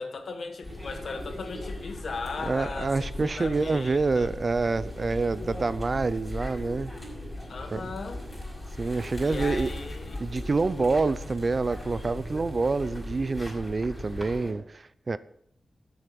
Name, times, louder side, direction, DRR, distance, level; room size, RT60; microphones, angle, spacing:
voice 1, 0.0-4.3 7.5-8.2 9.2-10.2, left 4 dB, 65° left, 6 dB, 1.7 m, -37 dB
sound 1, 0.6-14.5, left 1 dB, 15° left, 5.9 m, -38 dB
voice 2, 2.5-6.9 7.7-7.8 8.8-9.7 10.2-15.2, right 3 dB, 40° right, 16 dB, 0.5 m, -27 dB
13.5 x 7.8 x 7.0 m, 0.72 s
wide cardioid pair, 125°, 0 cm